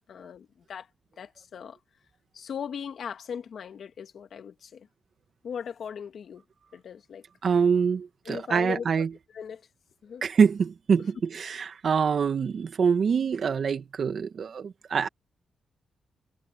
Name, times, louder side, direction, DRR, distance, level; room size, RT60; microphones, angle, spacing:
voice 1, 0.1-0.9 1.2-1.8 2.3-4.9 5.4-6.4 6.7-7.2 8.3-9.1 9.3-9.6 10.0-10.2, left 7 dB, 70° left, 2.1 m, -38 dB
voice 2, 7.4-9.1 10.2-15.1, right 6 dB, 60° right, 2.0 m, -25 dB
cardioid pair, 75°, 0 cm